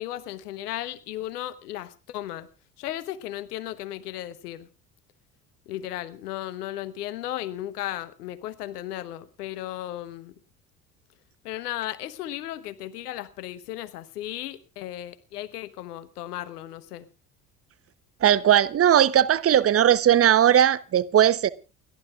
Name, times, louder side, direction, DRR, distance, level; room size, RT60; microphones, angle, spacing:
voice 1, 0.0-2.5 2.8-4.7 5.7-10.3 11.4-17.1, left 13 dB, 70° left, 1.2 m, -35 dB
voice 2, 18.2-21.5, right 10 dB, 30° right, 0.9 m, -18 dB
29.5 x 12.0 x 2.4 m
figure-of-eight pair, 55°, 48 cm